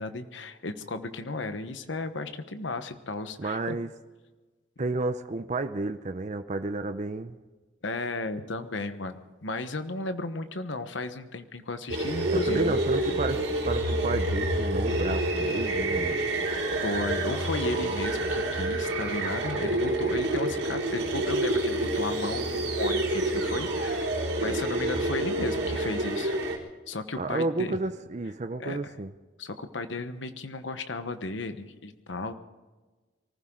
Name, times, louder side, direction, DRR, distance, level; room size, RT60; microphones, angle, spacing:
voice 1, 0.0-3.8 7.8-12.7 16.8-26.4 26.9-27.8 28.6-28.9 29.4-32.3, left 2 dB, 85° left, 1.1 m, -34 dB
voice 2, 3.4-3.9 4.8-7.3 12.3-16.3 27.2-29.1, right 2 dB, 40° right, 0.6 m, -31 dB
sound 1, 11.9-26.6, right 1 dB, 75° right, 3.8 m, -28 dB
24.0 x 15.0 x 3.8 m
head